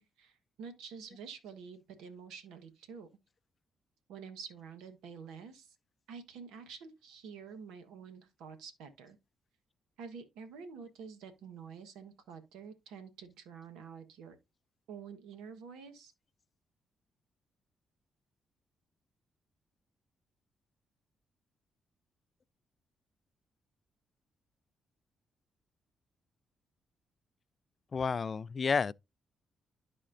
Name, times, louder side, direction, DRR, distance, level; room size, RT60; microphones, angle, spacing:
voice 1, 0.0-3.1 4.1-5.7 6.1-9.2 10.0-14.4 14.9-16.1, right 6 dB, 85° right, 1.2 m, -48 dB
voice 2, 27.9-28.9, left 5 dB, 45° left, 0.3 m, -30 dB
12.5 x 4.2 x 2.6 m
supercardioid pair, 60°, 0 cm